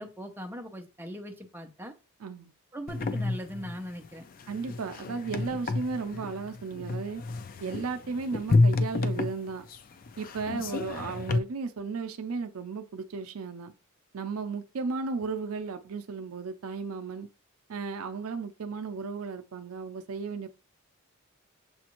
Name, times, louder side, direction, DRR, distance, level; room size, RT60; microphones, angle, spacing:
voice 1, 0.0-1.9 2.7-4.2, equal, 10° right, 0.6 m, -40 dB
voice 2, 2.2-2.5 4.5-7.2 7.6-9.6 10.2-13.7 14.1-17.3 17.7-20.5, right 4 dB, 80° right, 0.5 m, -35 dB
sound 1, 2.9-11.4, left 3 dB, 40° left, 0.4 m, -30 dB
7.0 x 2.5 x 2.9 m
head